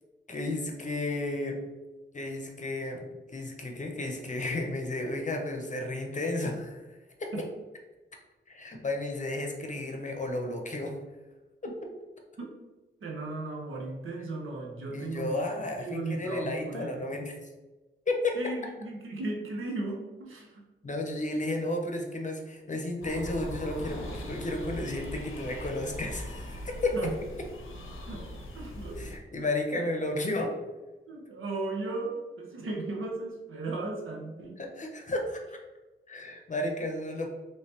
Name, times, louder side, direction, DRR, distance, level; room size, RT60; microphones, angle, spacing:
voice 1, 0.3-1.6 2.1-6.8 7.2-7.3 8.5-11.0 11.6-11.7 14.9-17.3 18.1-18.4 20.8-27.1 29.0-30.5 34.6-35.6 36.1-37.3, left 2 dB, 40° left, 2 dB, 0.7 m, -33 dB
voice 2, 13.0-15.4 15.8-17.2 18.3-20.6 26.9-27.2 28.1-28.3 28.5-29.1 31.1-34.6, right 2 dB, 90° right, 0 dB, 0.7 m, -36 dB
sound 1, 23.0-29.2, left 1 dB, 85° left, 0.6 m, -40 dB
3.2 x 3.0 x 2.9 m, 1.1 s
cardioid pair, 70°, 20 cm